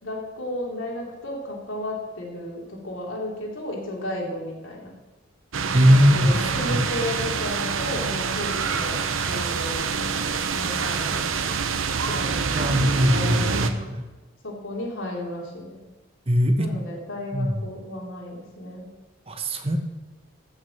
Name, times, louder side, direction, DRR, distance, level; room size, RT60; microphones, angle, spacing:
voice 1, 0.0-4.9 5.9-11.7 12.0-14.0 14.4-15.8 16.6-18.9, left 1 dB, 75° left, -1 dB, 3.3 m, -34 dB
sound 1, 5.5-13.7, right 5 dB, 85° right, 0.9 m, -26 dB
voice 2, 5.7-6.8 12.5-14.0 16.3-16.7 17.3-17.6 19.3-19.8, equal, 30° right, 5 dB, 1.1 m, -20 dB
14.0 x 6.6 x 7.2 m, 1.2 s
head